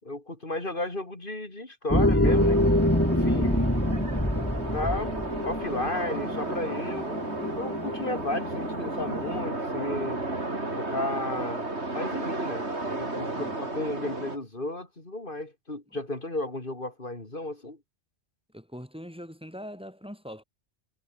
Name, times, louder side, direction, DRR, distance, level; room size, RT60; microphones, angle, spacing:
voice 1, 0.0-2.6 3.1-3.7 4.7-5.1 5.4-7.2 7.5-10.2 10.8-11.6 11.9-17.8, left 2 dB, 50° left, 4.2 m, -34 dB
sound 1, 1.9-9.4, left 1 dB, 10° left, 3.3 m, -26 dB
sound 2, 2.2-14.4, right 2 dB, 75° right, 4.7 m, -33 dB
voice 2, 13.2-13.6 18.5-20.4, equal, 5° right, 7.3 m, -42 dB
omnidirectional pair, 1.2 m